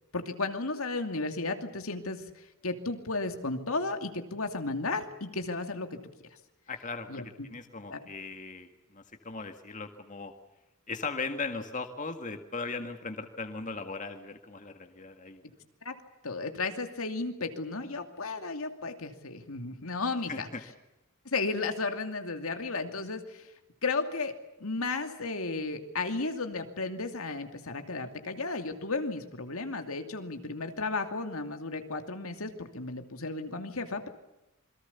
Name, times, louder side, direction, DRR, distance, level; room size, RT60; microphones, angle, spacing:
voice 1, 0.1-6.0 7.1-7.2 7.9-8.0 15.8-15.9 16.2-20.5 21.2-23.5 23.8-24.3 24.6-34.1, left 3 dB, 70° left, 6 dB, 2.6 m, -34 dB
voice 2, 6.7-10.3 10.9-15.4 20.3-20.6, left 4 dB, 35° left, 6 dB, 1.9 m, -38 dB
27.5 x 23.0 x 7.1 m, 0.97 s
head